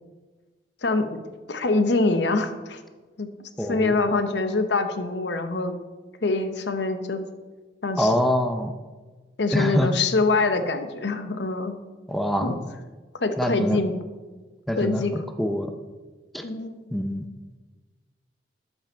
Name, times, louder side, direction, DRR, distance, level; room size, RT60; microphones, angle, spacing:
voice 1, 0.8-1.2 1.5-2.8 3.2-3.3 3.7-5.8 6.2-7.2 7.8-8.1 9.4-11.8 12.4-12.5 13.2-13.9 14.8-15.1 16.4-16.9, left 3 dB, 65° left, 8 dB, 0.8 m, -24 dB
voice 2, 3.6-4.0 8.0-8.7 9.5-9.9 12.1-12.6 13.4-13.8 14.7-15.7 16.3-16.4 16.9-17.3, equal, ahead, 5 dB, 0.5 m, -24 dB
12.0 x 5.5 x 4.5 m, 1.3 s
head